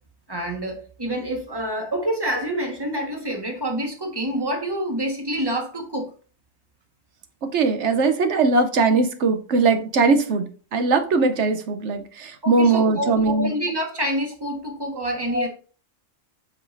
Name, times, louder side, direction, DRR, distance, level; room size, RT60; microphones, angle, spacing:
voice 1, 0.3-6.1 12.4-15.5, right 1 dB, 20° right, 1.4 m, -27 dB
voice 2, 7.4-13.5 15.3-15.5, right 3 dB, 60° right, 1.0 m, -20 dB
8.1 x 5.6 x 2.6 m
omnidirectional pair, 1.4 m